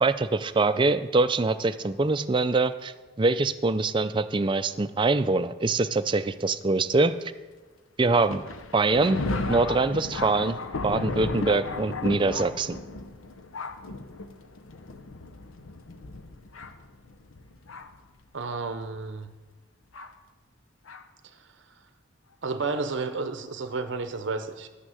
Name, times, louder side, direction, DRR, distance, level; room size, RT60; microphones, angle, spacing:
voice 1, 0.0-7.1 8.0-8.4 8.7-9.2 9.5-12.8, right 3 dB, 25° right, 10 dB, 0.4 m, -24 dB
Thunder, 8.1-18.1 18.8-18.9 19.9-20.1 20.9-21.0, left 3 dB, 85° left, 0.8 m, -35 dB
voice 2, 18.3-19.3 21.4-21.5 22.4-24.7, right 3 dB, 60° right, 8 dB, 0.7 m, -31 dB
11.5 x 6.2 x 7.9 m, 1.3 s
head